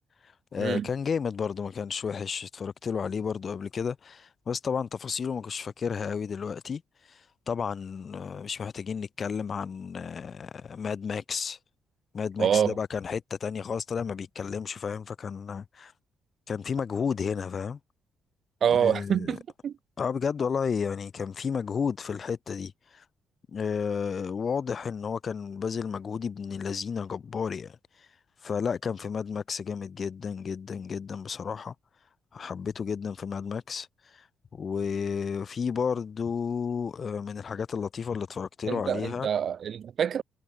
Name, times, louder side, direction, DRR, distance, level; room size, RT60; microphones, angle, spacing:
voice 1, 0.5-6.8 7.1-7.2 7.5-11.6 12.1-15.9 16.5-17.8 18.8-19.4 20.0-23.0 23.5-27.8 28.4-31.7 32.3-33.9 34.1-34.2 34.5-39.3, left 6 dB, 45° left, 0.6 m, -32 dB
voice 2, 12.4-12.7 18.6-19.7 38.7-40.2, right 8 dB, 60° right, 1.1 m, -26 dB
cardioid pair, 90°, 0 cm